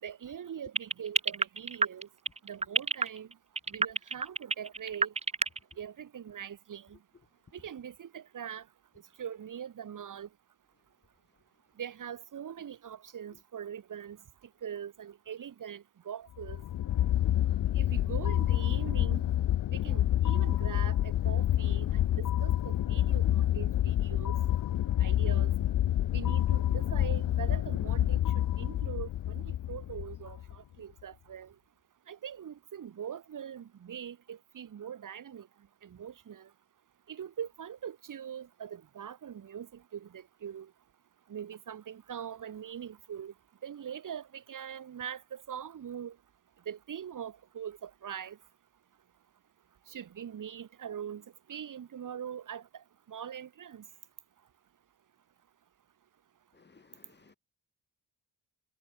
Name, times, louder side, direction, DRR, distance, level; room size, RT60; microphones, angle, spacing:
voice 1, 0.0-2.1 2.4-3.3 3.7-5.1 5.8-7.0 7.5-8.7 9.2-10.3 11.8-14.2 14.6-16.6 17.7-19.3 19.7-24.3 25.0-25.5 26.1-31.5 32.1-35.5 35.8-36.5 37.1-40.7 41.3-43.3 43.6-46.2 46.6-48.4 49.9-53.8, right 8 dB, 55° right, 5.0 m, -42 dB
sound 1, 0.7-5.7, right 4 dB, 15° right, 1.0 m, -27 dB
sound 2, 16.4-30.5, left 12 dB, 60° left, 0.9 m, -28 dB
voice 2, 56.5-57.3, left 4 dB, 30° left, 4.1 m, -60 dB
cardioid pair, 115°, 37 cm